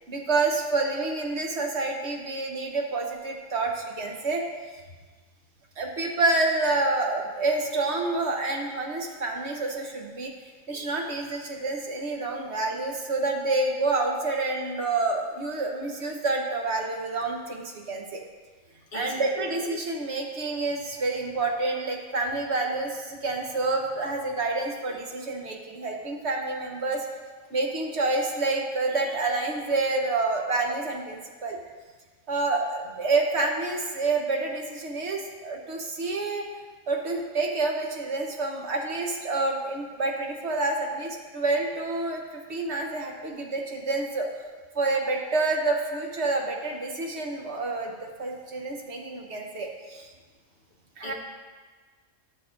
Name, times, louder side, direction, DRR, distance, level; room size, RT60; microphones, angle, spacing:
voice 1, 0.1-4.4 5.8-10.3 10.7-18.2 18.9-27.1 27.5-31.6 32.3-36.5 36.9-42.2 42.5-44.3 44.7-50.1 51.0-51.1, right 3 dB, 55° right, 1 dB, 1.3 m, -28 dB
voice 2, 18.9-19.5 51.0-51.1, left 3 dB, 40° left, -2 dB, 1.5 m, -39 dB
14.0 x 6.6 x 2.6 m, 1.4 s
omnidirectional pair, 1.4 m